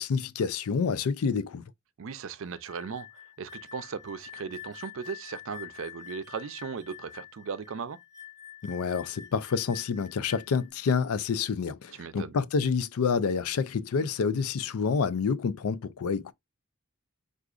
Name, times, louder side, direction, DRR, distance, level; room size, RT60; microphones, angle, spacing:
voice 1, 0.0-1.6 8.6-16.3, left 5 dB, 90° left, 0.4 m, -28 dB
voice 2, 2.0-3.1 3.4-8.0 11.9-12.4, right 6 dB, 65° right, 0.5 m, -37 dB
sound 1, 2.5-10.7, left 10 dB, 20° right, 0.8 m, -47 dB
4.8 x 2.4 x 2.4 m
head